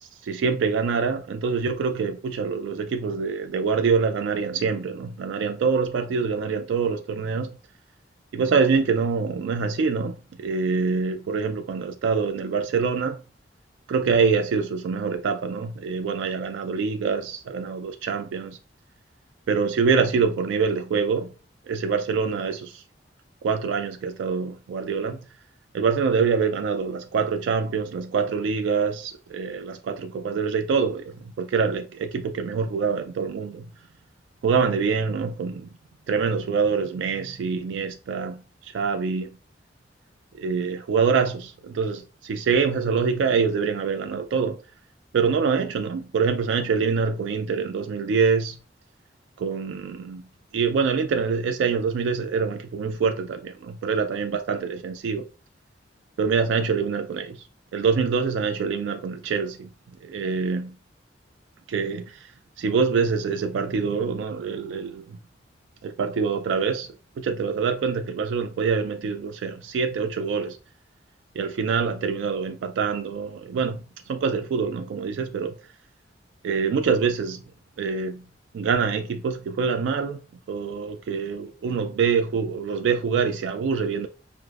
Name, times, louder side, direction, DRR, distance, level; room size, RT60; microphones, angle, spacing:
voice 1, 0.0-7.6 8.3-13.2 13.9-18.6 19.5-21.3 21.7-22.8 23.4-25.3 25.7-33.7 34.4-35.7 36.1-39.3 40.4-44.6 45.1-48.6 49.4-50.2 50.5-55.3 56.2-57.4 57.7-59.7 60.0-60.8 61.7-65.2 65.8-70.6 71.3-75.6 76.4-77.4 77.8-78.2 78.5-80.2 80.5-84.1, right 5 dB, 80° right, 0.3 m, -25 dB
4.9 x 2.0 x 2.3 m
head